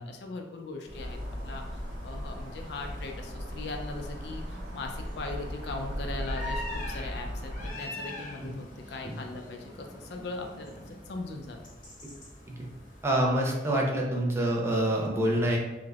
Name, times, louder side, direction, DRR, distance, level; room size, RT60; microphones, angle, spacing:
voice 1, 0.0-10.7 11.1-11.6, left 3 dB, 70° left, 3 dB, 0.4 m, -39 dB
sound 1, 0.8-13.1, left 1 dB, 45° left, 0.8 m, -44 dB
sound 2, 0.9-7.7, equal, 70° right, 0.5 m, -37 dB
voice 2, 13.0-15.6, right 1 dB, 15° right, -1 dB, 0.4 m, -26 dB
3.2 x 2.1 x 2.3 m, 1.1 s
head